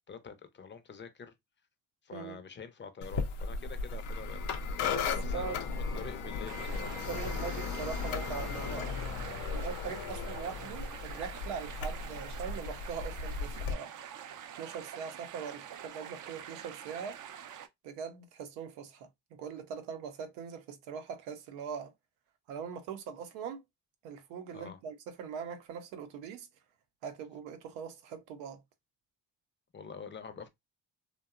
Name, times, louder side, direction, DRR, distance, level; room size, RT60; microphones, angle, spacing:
voice 1, 0.1-1.3 2.0-4.9 5.1-5.7 5.9-7.6 11.7-11.8 24.5-24.8 29.7-30.5, left 6 dB, 25° left, 0.5 m, -46 dB
sound 1, 3.0-13.7, left 5 dB, 85° left, 0.6 m, -36 dB
voice 2, 4.9-5.6 7.1-9.0 9.5-13.9 14.5-17.2 17.8-21.9 22.5-23.6 24.0-26.5 27.0-28.6, right 7 dB, 90° right, 0.6 m, -41 dB
sound 2, 6.5-17.7, right 9 dB, 45° right, 0.4 m, -46 dB
2.7 x 2.2 x 2.4 m
supercardioid pair, 55°, 46 cm